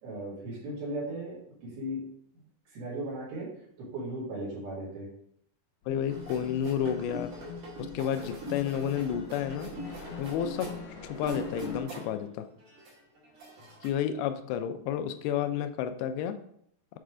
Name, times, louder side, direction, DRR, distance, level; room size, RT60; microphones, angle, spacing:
voice 1, 0.0-2.0 2.7-3.5 3.8-5.1, right 1 dB, 80° right, -7 dB, 4.0 m, -37 dB
sound 1, 5.8-11.9, left 3 dB, 75° left, 2.9 m, -48 dB
voice 2, 5.9-7.3 7.8-9.7 10.2-10.7 11.0-12.5 13.8-16.4, left 9 dB, 90° left, 9 dB, 2.5 m, -31 dB
sound 2, 6.1-12.3 12.6-13.9, left 1 dB, 60° right, 3.4 m, -41 dB
7.6 x 3.3 x 4.9 m, 0.69 s
omnidirectional pair, 4.3 m